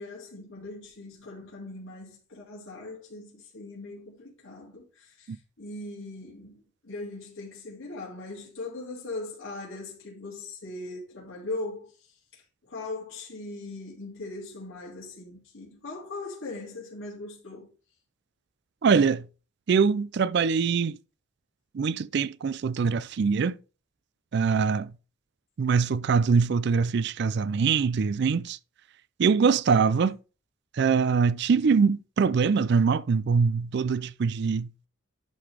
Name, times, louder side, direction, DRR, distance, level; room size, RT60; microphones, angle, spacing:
voice 1, 0.0-11.9 12.3-17.7, left 2 dB, 75° left, 3.0 m, -40 dB
voice 2, 18.8-19.3 19.7-21.0 21.7-23.6 24.3-24.9 25.6-28.6 29.2-30.2 30.7-34.7, right 5 dB, 55° right, 0.4 m, -23 dB
11.5 x 3.9 x 4.9 m
head